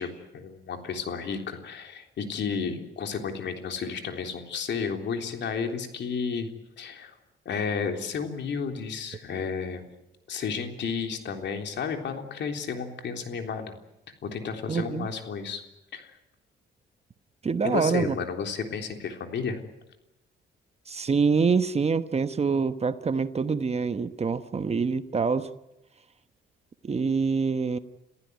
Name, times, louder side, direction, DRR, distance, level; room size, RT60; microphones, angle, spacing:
voice 1, 0.0-6.5 6.8-7.1 7.5-9.8 10.3-13.7 14.2-15.6 15.9-16.1 17.6-19.6, left 6 dB, 65° left, 5 dB, 3.5 m, -32 dB
voice 2, 14.7-15.1 17.4-18.1 20.9-25.5 26.8-27.8, right 5 dB, 30° right, 12 dB, 1.1 m, -25 dB
28.0 x 15.0 x 9.4 m, 0.93 s
cardioid pair, 90°, 20 cm